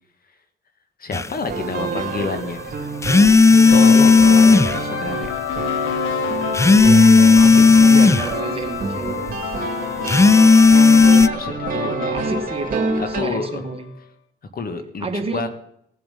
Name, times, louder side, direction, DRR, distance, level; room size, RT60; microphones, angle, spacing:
voice 1, 1.0-2.6 3.7-5.3 11.3-12.0 12.2-12.3 13.0-13.6 14.5-15.1 15.3-15.5, left 4 dB, 50° left, 9 dB, 1.7 m, -29 dB
sound 1, 1.1-1.3 3.0-4.8 6.5-8.3 10.1-11.3, left 4 dB, 15° left, 0.5 m, -11 dB
sound 2, 1.5-13.2, right 4 dB, 45° right, 2.7 m, -27 dB
voice 2, 1.8-2.1 6.6-7.1 7.4-9.2 11.9-13.9 15.0-15.5, right 3 dB, 30° right, 4 dB, 2.1 m, -30 dB
sound 3, 2.1-13.9, left 8 dB, 75° left, 1.3 m, -30 dB
18.5 x 7.7 x 5.3 m, 0.70 s
cardioid pair, 90°, 20 cm